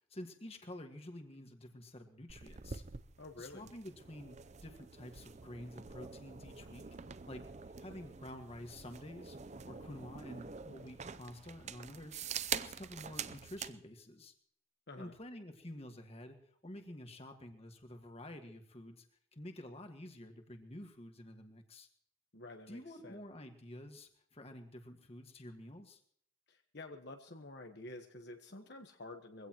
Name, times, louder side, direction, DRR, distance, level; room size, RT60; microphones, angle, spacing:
voice 1, 0.1-2.8 3.4-6.9 7.3-7.4 7.8-9.4 9.7-12.2 12.5-14.3 14.9-16.4 16.6-19.1 19.3-21.9 22.7-26.0, left 1 dB, 30° left, 5 dB, 1.7 m, -49 dB
sound 1, 2.3-13.8, right 7 dB, 35° right, 0.5 m, -46 dB
voice 2, 3.2-3.7 14.9-15.1 22.3-23.2 26.5-29.5, left 2 dB, 55° left, 4 dB, 1.3 m, -50 dB
22.5 x 16.5 x 3.0 m, 0.63 s
head